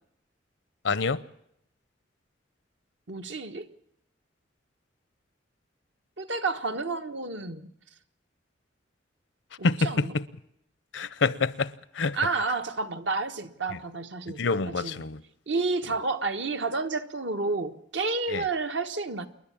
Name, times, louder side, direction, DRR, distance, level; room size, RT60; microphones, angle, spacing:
voice 1, 0.8-1.2 9.6-10.2 10.9-12.2 14.4-15.2 18.3-18.4, left 4 dB, 85° left, 0.8 m, -27 dB
voice 2, 3.1-3.7 6.2-7.7 9.6-10.1 12.1-15.1 15.5-19.3, right 3 dB, 75° right, 1.3 m, -30 dB
28.0 x 11.0 x 8.6 m
head